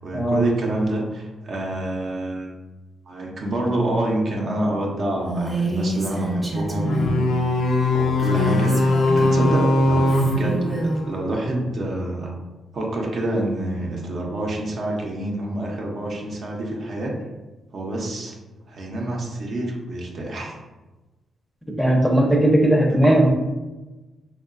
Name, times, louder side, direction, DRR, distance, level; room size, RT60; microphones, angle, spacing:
voice 1, 0.0-2.5 3.1-7.4 7.9-12.4 12.7-17.1 17.7-18.4 18.7-20.5 23.0-23.3, right 1 dB, 60° right, -1 dB, 0.5 m, -27 dB
Female speech woman speaking, 5.3-7.2 8.2-9.6 10.1-11.0, right 1 dB, 20° right, 0.8 m, -27 dB
sound 1, 6.8-11.3, left 2 dB, 80° left, 0.3 m, -21 dB
voice 2, 21.8-23.3, right 1 dB, ahead, 0 dB, 0.5 m, -17 dB
2.9 x 2.1 x 2.4 m, 1.1 s
cardioid pair, 70°, 0 cm